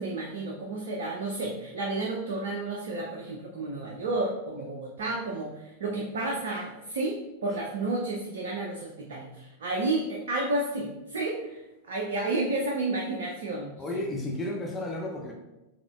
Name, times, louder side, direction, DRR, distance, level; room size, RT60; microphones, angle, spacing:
voice 1, 0.0-5.5 5.8-11.6 11.8-13.7, right 2 dB, 60° right, -1 dB, 0.6 m, -31 dB
voice 2, 13.8-15.3, left 1 dB, 20° left, 0 dB, 0.6 m, -32 dB
5.0 x 3.5 x 2.4 m, 1.0 s
figure-of-eight pair, 90°, 0 cm